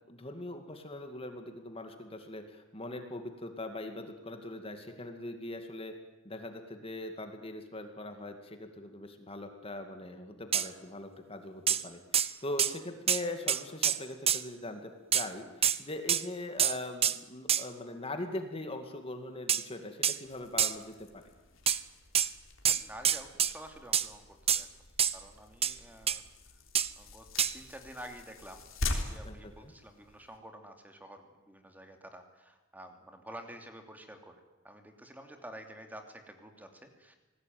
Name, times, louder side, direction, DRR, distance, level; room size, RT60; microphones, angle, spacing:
voice 1, 0.1-6.0 6.2-12.0 12.4-21.2 29.2-29.3 29.6-29.7, left 1 dB, 30° left, 6 dB, 2.3 m, -41 dB
sound 1, 10.5-10.7 11.7-11.8 12.1-12.3 12.6-12.8 13.1-13.2 13.5-14.4 15.1-15.3 15.6-15.8 16.1-16.2 16.6-16.8 17.0-17.2 17.5-17.6 19.5-19.6 20.0-20.2 20.6-20.7 21.7-21.8 22.1-22.3 22.7-23.5 23.9-24.1 24.5-24.6 25.0-25.2 25.6-25.7 26.1-26.2 26.8-26.9 27.4-27.5, right 9 dB, 30° right, 0.8 m, -27 dB
sound 2, 20.2-30.4, left 2 dB, 85° left, 3.6 m, -43 dB
voice 2, 22.7-24.7 25.1-26.3 27.0-37.2, right 1 dB, 10° right, 5 dB, 2.8 m, -49 dB
27.5 x 19.5 x 9.4 m, 1.1 s
head